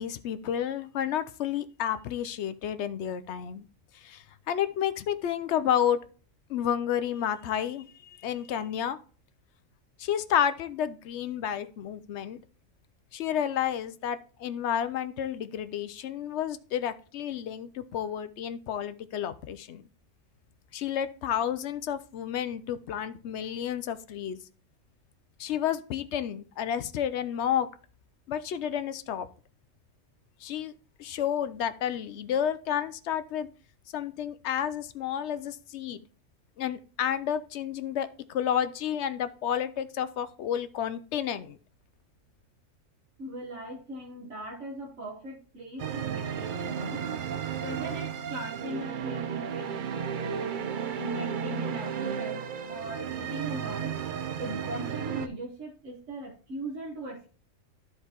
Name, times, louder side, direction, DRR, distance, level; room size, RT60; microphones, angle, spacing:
voice 1, 0.0-3.6 4.0-6.0 6.5-9.0 10.0-12.4 13.1-19.8 20.7-24.4 25.4-27.7 28.3-29.3 30.4-30.7 31.0-33.5 33.9-36.0 36.6-41.6, left 9 dB, 65° left, 13 dB, 0.8 m, -31 dB
voice 2, 43.2-47.0 47.6-50.6 50.9-54.1 54.4-57.3, right 1 dB, 70° right, -3 dB, 1.5 m, -39 dB
sound 1, 45.8-55.3, right 8 dB, 55° right, 0.6 m, -34 dB
13.0 x 4.6 x 2.9 m, 0.39 s
omnidirectional pair, 1.3 m